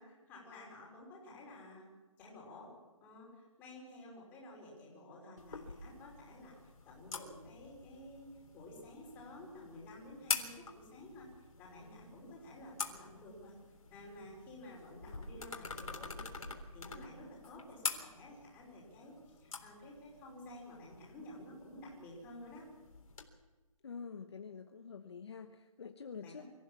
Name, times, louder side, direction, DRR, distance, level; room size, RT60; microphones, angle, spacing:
voice 1, 0.0-1.9 2.2-2.7 3.0-6.5 6.8-11.3 11.6-13.5 13.9-16.5 16.7-22.6 26.2-26.4, left 1 dB, 10° left, -4 dB, 4.8 m, -52 dB
sound 1, 5.4-23.2, left 4 dB, 75° left, 3.6 m, -46 dB
voice 2, 23.8-26.4, left 6 dB, 50° left, 6 dB, 1.1 m, -47 dB
25.0 x 15.0 x 7.4 m, 1.2 s
hypercardioid pair, 170°, 18 cm